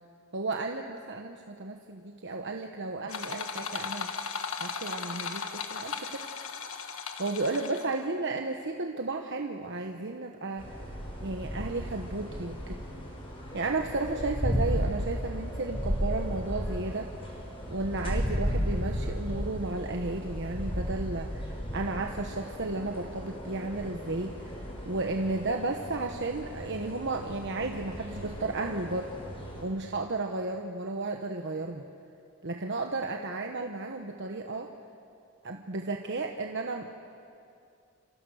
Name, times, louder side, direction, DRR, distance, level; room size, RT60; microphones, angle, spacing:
voice 1, 0.3-4.1 4.6-6.2 7.2-10.8 11.2-12.8 13.5-17.1 17.7-24.4 24.8-29.1 29.6-31.8 32.4-34.7 35.4-36.9, right 3 dB, 55° right, 3 dB, 1.2 m, -33 dB
sound 1, 3.1-8.0, left 5 dB, 70° left, 1.6 m, -37 dB
sound 2, 10.6-29.6, equal, 25° left, 5.2 m, -35 dB
27.5 x 27.0 x 6.5 m, 2.5 s
head